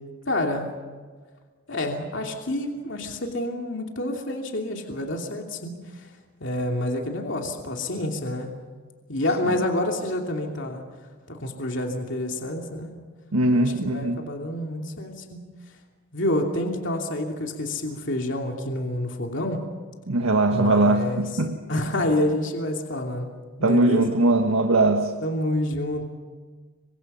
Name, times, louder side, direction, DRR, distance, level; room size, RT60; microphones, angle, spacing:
voice 1, 0.3-0.7 1.7-6.1 6.4-8.5 9.1-10.8 11.3-12.9 13.5-15.4 16.1-19.6 20.5-21.2 21.7-23.3 23.6-24.1 25.2-26.0, left 1 dB, 55° left, 2 dB, 2.9 m, -28 dB
voice 2, 13.3-14.2 20.1-21.6 23.6-25.1, right 2 dB, 80° right, 5 dB, 1.5 m, -21 dB
29.5 x 25.0 x 5.7 m, 1.5 s
head